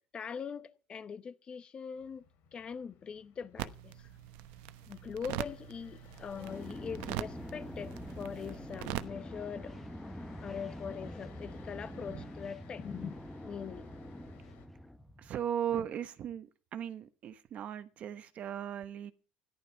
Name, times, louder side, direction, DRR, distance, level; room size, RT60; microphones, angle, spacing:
voice 1, 0.1-2.2 2.5-4.1 4.9-9.8 10.4-13.1 13.4-13.9, left 6 dB, 30° left, 1.1 m, -42 dB
sound 1, 1.9-14.7, left 7 dB, 65° left, 3.1 m, -59 dB
sound 2, 3.6-9.1, right 16 dB, 80° right, 0.9 m, -42 dB
sound 3, 6.3-15.3, equal, 5° left, 1.1 m, -45 dB
voice 2, 15.2-19.1, right 9 dB, 45° right, 1.1 m, -37 dB
14.5 x 11.5 x 5.8 m
cardioid pair, 140°, 3 cm